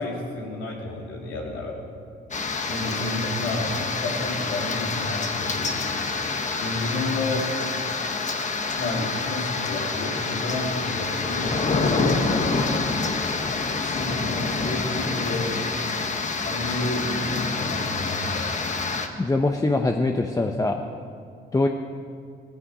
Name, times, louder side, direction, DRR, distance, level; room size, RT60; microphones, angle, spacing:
voice 1, 0.0-1.8 2.7-5.8 6.6-7.5 8.8-12.2 13.8-15.5 16.4-18.5, left 2 dB, 85° left, -2 dB, 3.2 m, -31 dB
sound 1, 2.3-19.1, left 4 dB, 35° left, 1.3 m, -27 dB
voice 2, 19.2-20.8 21.5-21.7, left 2 dB, 15° left, 4 dB, 0.8 m, -23 dB
17.0 x 14.5 x 5.0 m, 2.4 s
cardioid pair, 90°, 20 cm